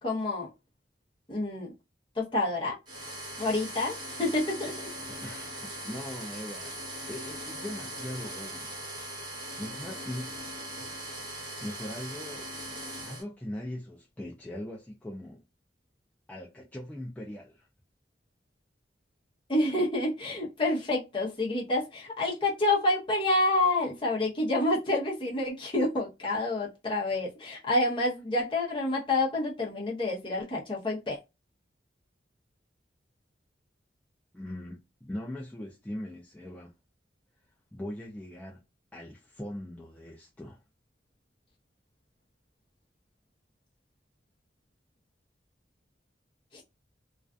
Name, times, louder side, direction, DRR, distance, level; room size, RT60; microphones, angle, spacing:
voice 1, 0.0-0.5 1.3-1.7 2.1-2.8 3.4-4.8 19.5-31.2 46.5-46.6, left 2 dB, 30° left, 0.8 m, -28 dB
sound 1, 2.9-13.2, right 1 dB, 25° right, 0.9 m, -40 dB
voice 2, 5.1-8.7 9.6-10.4 11.6-12.5 13.0-15.4 16.3-17.7 34.3-36.7 37.7-38.6 38.9-40.6, left 1 dB, 10° left, 0.3 m, -40 dB
2.4 x 2.4 x 2.2 m
head